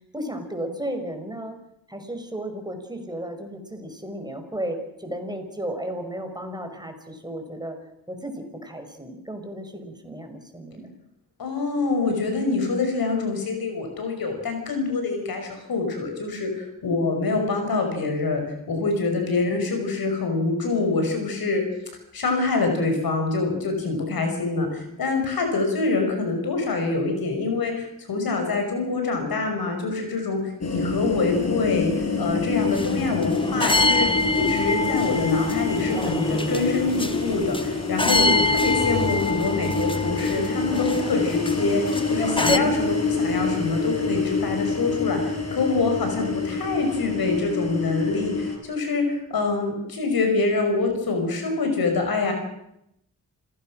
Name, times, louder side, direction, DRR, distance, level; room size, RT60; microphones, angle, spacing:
voice 1, 0.1-1.6 1.9-7.8 8.1-10.9 38.2-38.4 42.2-42.9, right 1 dB, 10° right, 5 dB, 5.4 m, -34 dB
voice 2, 11.4-21.6 22.1-31.9 32.2-34.1 34.4-52.3, left 3 dB, 75° left, 4 dB, 6.0 m, -25 dB
sound 1, 30.6-48.6, left 4 dB, 45° left, 5.4 m, -27 dB
sound 2, 32.6-42.6, left 3 dB, 15° left, 1.3 m, -26 dB
27.5 x 16.5 x 6.4 m, 0.79 s
supercardioid pair, 45°, 37 cm